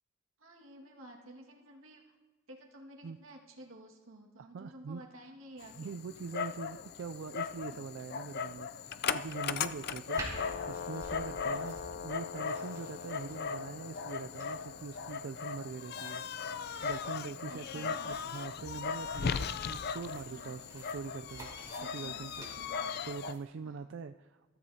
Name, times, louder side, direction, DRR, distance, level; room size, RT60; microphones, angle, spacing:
voice 1, 0.4-2.0 2.5-5.9 7.7-7.8 17.5-18.2 20.3-20.6 21.8-23.0 23.6-23.8, right 1 dB, 90° right, 0 dB, 1.8 m, -52 dB
voice 2, 4.5-5.0 5.8-16.2 16.8-21.5 21.8-22.3 22.6-24.6, right 5 dB, 65° right, 8 dB, 0.3 m, -43 dB
Dog, 5.6-23.3, left 6 dB, 50° left, 0.4 m, -38 dB
sound 1, 10.1-23.4, right 1 dB, 20° right, 4.8 m, -50 dB
22.0 x 14.0 x 2.8 m, 1.3 s
head